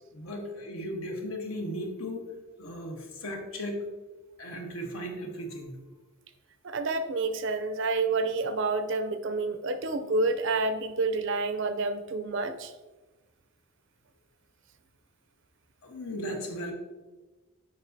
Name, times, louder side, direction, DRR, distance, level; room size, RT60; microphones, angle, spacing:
voice 1, 0.1-2.2 2.6-3.8 4.4-5.8 15.8-16.7, equal, 80° left, 2 dB, 1.2 m, -36 dB
voice 2, 6.6-12.7, right 3 dB, 65° right, 9 dB, 0.5 m, -29 dB
7.3 x 5.5 x 2.7 m, 1.2 s
head